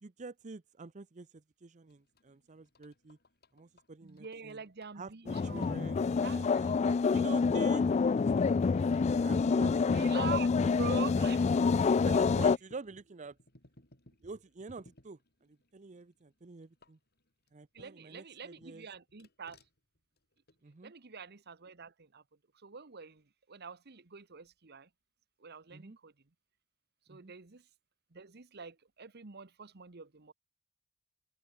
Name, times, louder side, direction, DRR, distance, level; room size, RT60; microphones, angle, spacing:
voice 1, 0.0-3.2 3.5-4.6 4.9-6.0 6.3-7.8 8.9-10.2 10.5-10.8 11.1-11.2 12.1-13.4 14.2-17.0 17.5-18.9 20.6-20.9 25.7-26.0 27.1-27.3, right 4 dB, 35° right, 0.6 m, -48 dB
sound 1, 1.9-18.2 18.6-20.8, left 1 dB, 50° left, 7.7 m, -66 dB
voice 2, 4.0-7.7 9.9-12.2 17.7-19.6 20.8-22.2 22.5-24.9 25.4-26.1 27.1-27.6 28.1-30.3, right 5 dB, 50° right, 1.1 m, -45 dB
sound 2, 5.3-12.6, left 5 dB, 30° left, 0.3 m, -27 dB
head